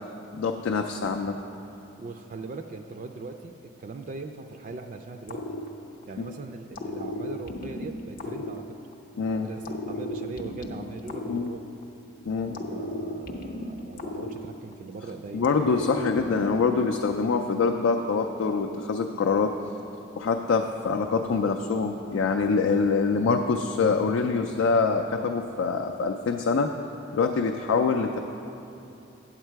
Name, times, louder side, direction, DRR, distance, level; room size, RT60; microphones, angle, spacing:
voice 1, 0.4-1.4 6.2-6.3 9.2-9.5 11.3-11.5 12.3-12.6 15.3-19.5 20.2-26.7 27.1-28.2, left 4 dB, 90° left, 3 dB, 0.4 m, -25 dB
voice 2, 2.0-3.5 3.8-5.4 6.1-8.6 9.3-11.6 12.3-15.5, right 3 dB, 40° right, 5 dB, 0.3 m, -40 dB
sound 1, 5.3-6.3 6.7-9.2 9.6-12.1 12.5-15.0 15.4-16.9, left 1 dB, 45° left, 0.6 m, -35 dB
8.8 x 7.4 x 4.6 m, 2.8 s
head